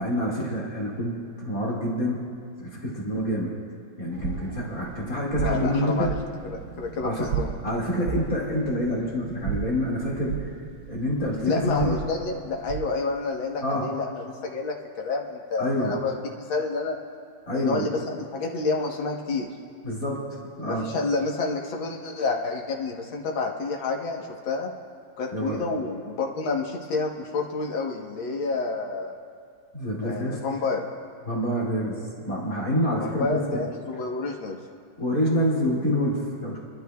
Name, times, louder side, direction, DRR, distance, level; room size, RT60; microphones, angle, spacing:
voice 1, 0.0-2.2 2.6-3.5 4.0-6.2 7.0-7.3 7.6-10.3 10.9-12.0 13.6-13.9 15.6-16.0 17.5-17.9 19.8-20.2 20.6-20.9 25.3-25.6 29.7-30.4 31.3-33.6 35.0-36.6, equal, 45° left, -4 dB, 2.6 m, -27 dB
sound 1, 4.1-13.0, right 7 dB, 85° right, 0.6 m, -35 dB
voice 2, 5.4-6.1 6.4-7.5 11.4-17.0 17.5-19.5 20.6-24.7 25.2-29.1 30.0-30.8 33.0-34.6, left 4 dB, 75° left, 1 dB, 2.1 m, -29 dB
28.0 x 12.5 x 2.3 m, 2.2 s
omnidirectional pair, 2.2 m